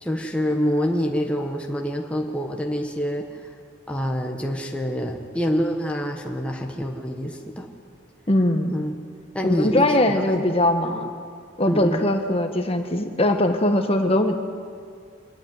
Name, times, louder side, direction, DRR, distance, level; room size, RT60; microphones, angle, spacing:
voice 1, 0.0-3.5 3.9-7.7 8.7-8.9 9.3-10.3 10.8-11.0 11.7-12.0, equal, 5° left, 1 dB, 1.3 m, -26 dB
voice 2, 8.3-8.7 9.4-11.1 11.6-14.3, left 1 dB, 30° left, 5 dB, 1.4 m, -21 dB
23.5 x 14.0 x 9.6 m, 2.2 s
head